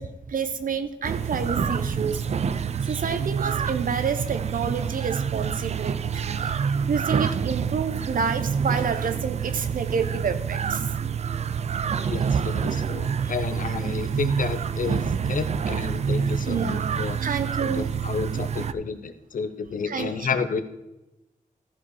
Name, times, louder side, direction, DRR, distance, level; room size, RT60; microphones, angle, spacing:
voice 1, 0.0-2.5 2.8-10.9 13.2-13.3 13.6-13.7 14.9-15.3 16.4-16.9 17.2-17.9 19.9-20.3, right 6 dB, 85° right, 10 dB, 0.9 m, -29 dB
sound 1, 1.0-18.7, right 7 dB, 50° right, 0.4 m, -27 dB
voice 2, 12.0-17.2 17.6-20.6, left 5 dB, 75° left, 10 dB, 0.8 m, -31 dB
14.0 x 5.1 x 4.8 m, 0.96 s
wide cardioid pair, 135°, 14 cm